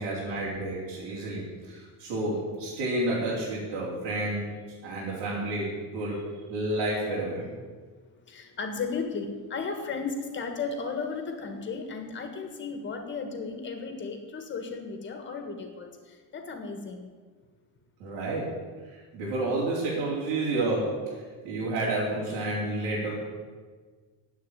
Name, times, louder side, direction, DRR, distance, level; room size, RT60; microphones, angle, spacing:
voice 1, 0.0-7.5 18.0-18.6 18.8-23.2, right 2 dB, 90° right, -6 dB, 4.1 m, -30 dB
voice 2, 8.3-15.9 16.3-17.1, left 4 dB, 25° left, 6 dB, 1.6 m, -34 dB
10.5 x 8.5 x 9.1 m, 1.5 s
cardioid pair, 180°, 41 cm